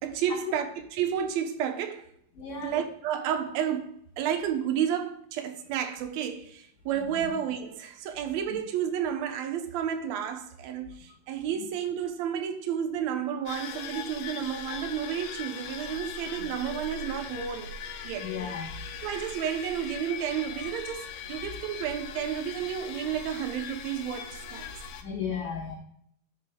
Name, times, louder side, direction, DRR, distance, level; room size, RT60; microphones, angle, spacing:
voice 1, 0.0-0.7 0.9-2.1 2.6-17.8 18.0-18.3 19.0-24.7, right 9 dB, 75° right, 1.6 m, -31 dB
voice 2, 2.4-2.8 7.0-7.3 18.2-18.7 25.0-25.7, left 6 dB, 60° left, 2.6 m, -35 dB
sound 1, 13.5-25.0, left 7 dB, 85° left, 2.7 m, -40 dB
13.0 x 6.6 x 2.3 m
omnidirectional pair, 4.3 m